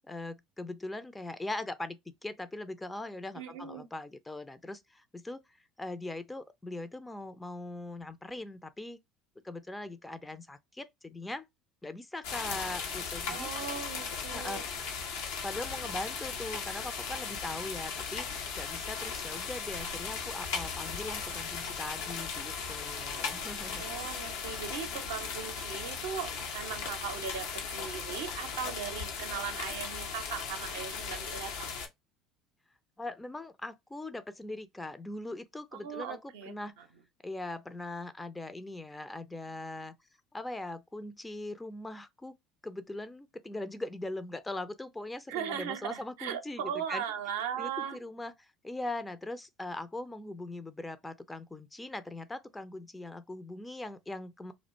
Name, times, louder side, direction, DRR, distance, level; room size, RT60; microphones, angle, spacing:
voice 1, 0.1-9.0 9.4-11.5 11.8-13.5 14.3-14.9 15.4-23.8 33.0-36.8 37.2-40.0 40.3-42.3 42.6-47.0 47.6-54.5, left 2 dB, 15° left, 0.4 m, -41 dB
voice 2, 3.3-3.9 13.3-14.7 23.8-27.4 27.7-31.8 35.7-36.8 45.3-48.0, right 8 dB, 75° right, 0.5 m, -38 dB
sound 1, 12.2-31.9, left 5 dB, 75° left, 0.5 m, -37 dB
2.4 x 2.1 x 2.5 m
hypercardioid pair, 70°, 0 cm